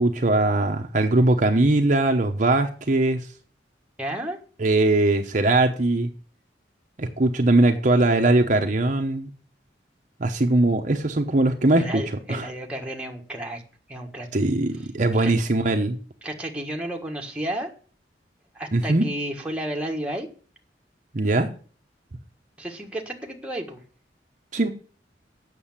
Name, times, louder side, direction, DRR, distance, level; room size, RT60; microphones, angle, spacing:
voice 1, 0.0-3.2 4.6-6.1 7.0-9.3 10.2-12.0 12.3-12.5 14.3-16.0 18.7-19.0 21.1-21.5 24.5-24.7, right 2 dB, 45° right, 4 dB, 0.9 m, -20 dB
voice 2, 4.0-4.4 11.8-13.6 13.9-14.3 15.2-15.3 16.2-17.7 18.5-20.3 22.6-23.8, right 1 dB, 5° right, 0 dB, 1.5 m, -32 dB
8.5 x 6.7 x 7.3 m, 0.41 s
head